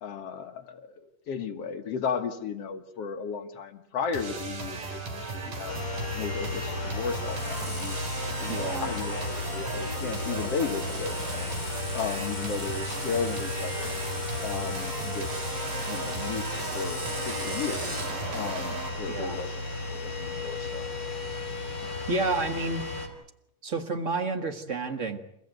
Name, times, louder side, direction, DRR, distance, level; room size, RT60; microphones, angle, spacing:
voice 1, 0.0-5.8 6.1-8.0 8.4-11.5 11.9-13.9 14.4-15.3 15.9-17.0 17.2-18.0 18.3-19.5 19.9-20.9 21.8-21.9, left 6 dB, 55° left, 6 dB, 2.0 m, -35 dB
sound 1, 4.1-18.9, right 4 dB, 70° right, 5.3 m, -36 dB
sound 2, 5.7-23.1, left 3 dB, 40° left, 5.1 m, -35 dB
Screech, 7.1-18.1, right 1 dB, 15° right, 1.2 m, -42 dB
voice 2, 8.5-8.9 19.1-19.4 22.1-22.8 23.6-25.2, right 3 dB, 40° right, 7 dB, 1.1 m, -30 dB
29.5 x 15.5 x 9.3 m, 0.80 s
omnidirectional pair, 3.9 m